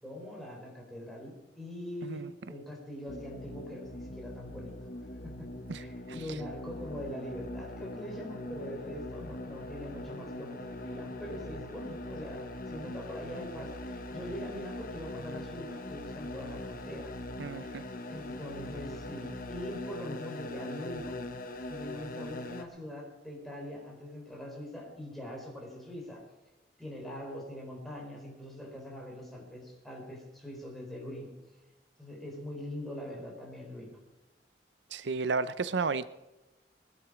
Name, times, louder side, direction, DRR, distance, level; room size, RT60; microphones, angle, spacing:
voice 1, 0.0-4.7 5.2-5.5 5.8-17.1 18.1-21.2 21.7-26.2 26.8-31.3 32.0-34.0, left 1 dB, ahead, -2 dB, 4.3 m, -43 dB
sound 1, 3.1-22.6, left 1 dB, 55° left, 1.2 m, -41 dB
voice 2, 17.4-17.8 34.9-36.1, right 4 dB, 85° right, 15 dB, 0.6 m, -32 dB
21.0 x 10.5 x 5.0 m, 1.0 s
head